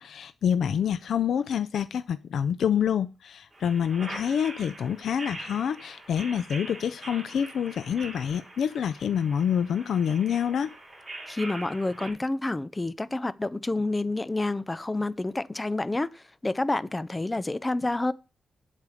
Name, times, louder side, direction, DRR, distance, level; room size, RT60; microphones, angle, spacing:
voice 1, 0.0-10.7, left 8 dB, 85° left, 0.4 m, -27 dB
sound 1, 3.5-12.1, right 2 dB, 20° right, 4.8 m, -43 dB
voice 2, 11.3-18.1, left 2 dB, 15° left, 0.4 m, -29 dB
8.2 x 4.9 x 7.0 m
wide cardioid pair, 150°, 0 cm